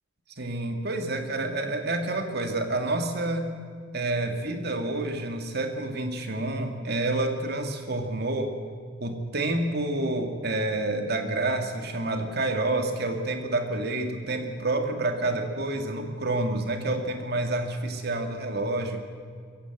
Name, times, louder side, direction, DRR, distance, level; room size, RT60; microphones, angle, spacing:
voice 1, 0.4-3.5 3.9-8.6 9.0-19.0, right 2 dB, 55° right, 5 dB, 2.2 m, -28 dB
22.5 x 16.0 x 7.8 m, 2.1 s
head